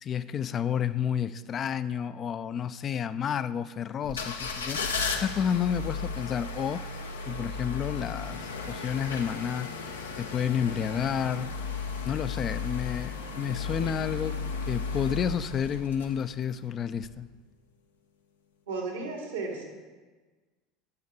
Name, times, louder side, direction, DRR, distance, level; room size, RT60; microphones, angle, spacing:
voice 1, 0.0-6.8 7.3-9.7 10.2-11.5 12.0-14.4 14.7-17.3, left 8 dB, 40° left, 13 dB, 0.4 m, -30 dB
sound 1, 4.0-16.5 17.0-17.1, left 4 dB, 85° left, 0.8 m, -35 dB
voice 2, 18.7-19.6, right 3 dB, 85° right, 0 dB, 2.4 m, -34 dB
8.3 x 6.5 x 6.7 m, 1.3 s
hypercardioid pair, 75°, 0 cm